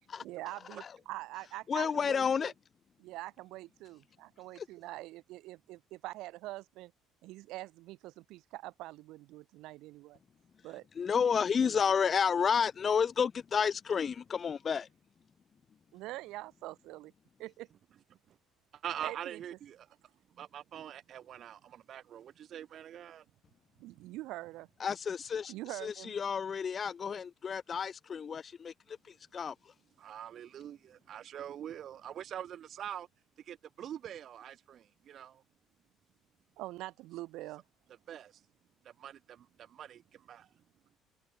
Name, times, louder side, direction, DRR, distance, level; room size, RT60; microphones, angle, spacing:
voice 1, 0.2-2.5 3.0-6.9 7.2-10.2 10.6-10.9 11.6-11.9 15.9-17.1 17.4-17.7 19.0-19.4 23.8-24.7 25.5-26.1 36.6-37.6, right 18 dB, 75° right, 7.5 m, -44 dB
voice 2, 1.7-2.5 4.6-4.7 11.0-14.9 24.8-25.5 25.8-28.7 29.3-29.5, left 6 dB, 30° left, 0.8 m, -30 dB
voice 3, 18.8-19.9 20.4-23.2 30.0-33.1 33.4-35.4 38.1-38.4 39.0-40.4, right 10 dB, 45° right, 1.8 m, -44 dB
cardioid pair, 140°, 0 cm